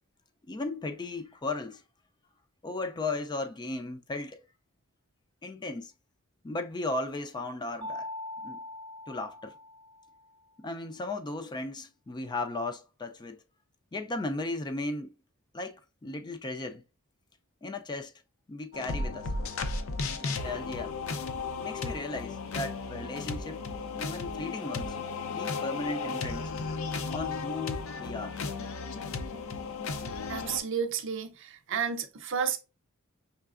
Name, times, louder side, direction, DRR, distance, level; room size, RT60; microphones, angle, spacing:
voice 1, 0.5-1.8 2.6-4.4 5.4-5.9 6.4-8.1 8.4-8.6 9.1-9.5 10.6-13.4 13.9-15.1 15.5-16.8 17.6-18.1 18.5-19.3 20.2-20.9 21.6-23.6 24.0-25.0 25.3-26.5 27.1-28.4, left 2 dB, 20° left, 0.4 m, -36 dB
Mallet percussion, 7.8-10.3, left 1 dB, 25° right, 0.6 m, -41 dB
sound 1, 18.7-30.6, left 4 dB, 70° left, 0.6 m, -35 dB
voice 2, 30.3-32.6, right 7 dB, 60° right, 0.7 m, -31 dB
5.6 x 3.2 x 2.4 m
head